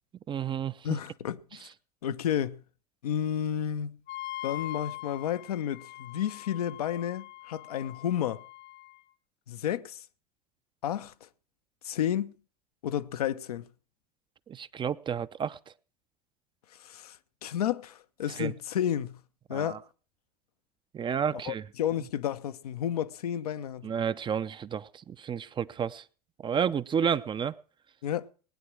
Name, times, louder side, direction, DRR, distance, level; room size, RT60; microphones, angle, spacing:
voice 1, 0.3-0.7 14.5-15.6 18.4-18.5 19.5-19.8 20.9-21.6 23.8-26.0 26.4-27.5, right 7 dB, 25° right, 0.6 m, -31 dB
voice 2, 0.8-1.6 2.0-2.6 3.0-4.0 4.4-8.4 9.5-10.0 10.8-11.3 11.8-12.3 12.8-13.7 16.8-17.2 17.4-19.2 19.5-19.8 21.3-23.9 28.0-28.3, left 10 dB, 75° left, 0.7 m, -31 dB
Wind instrument woodwind instrument, 4.1-9.0, left 16 dB, 50° left, 0.9 m, -42 dB
19.5 x 9.5 x 4.8 m
figure-of-eight pair, 75°, 20 cm